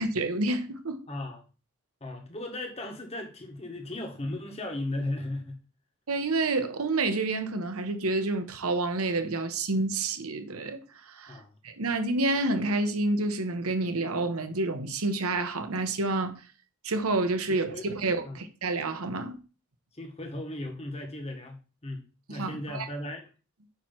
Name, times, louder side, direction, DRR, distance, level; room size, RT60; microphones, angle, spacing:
voice 1, 0.0-1.0 6.1-11.4 11.6-16.3 16.8-19.4 22.3-22.9, right 2 dB, 90° right, 1.0 m, -29 dB
voice 2, 1.1-1.4 2.0-5.6 11.3-11.5 17.5-17.9 18.2-18.4 19.9-22.0 22.3-23.2, left 1 dB, 30° left, 1.6 m, -36 dB
8.7 x 3.2 x 5.9 m
head